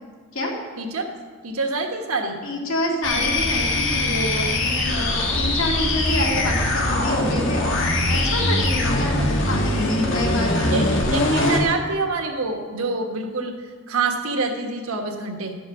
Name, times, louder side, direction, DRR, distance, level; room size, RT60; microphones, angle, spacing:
voice 1, 0.8-1.1 1.4-2.4 10.7-13.5 13.9-15.5, right 3 dB, 85° right, 2 dB, 1.4 m, -26 dB
voice 2, 2.4-7.6 8.1-11.0, left 1 dB, 80° left, -1 dB, 2.3 m, -27 dB
sound 1, 3.0-11.7, left 2 dB, 60° left, 1.6 m, -22 dB
12.5 x 5.3 x 6.2 m, 1.5 s
head